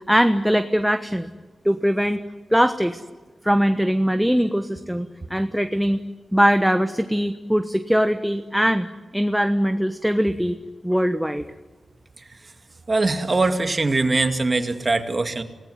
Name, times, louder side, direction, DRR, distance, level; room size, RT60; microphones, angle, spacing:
voice 1, 0.1-1.3 1.6-2.2 2.5-3.0 3.4-6.0 6.3-8.9 9.1-10.6 10.8-11.4, equal, ahead, 8 dB, 1.1 m, -21 dB
voice 2, 12.9-15.4, right 3 dB, 35° right, 6 dB, 2.3 m, -22 dB
28.0 x 18.5 x 9.5 m, 1.3 s
wide cardioid pair, 100°, 0 cm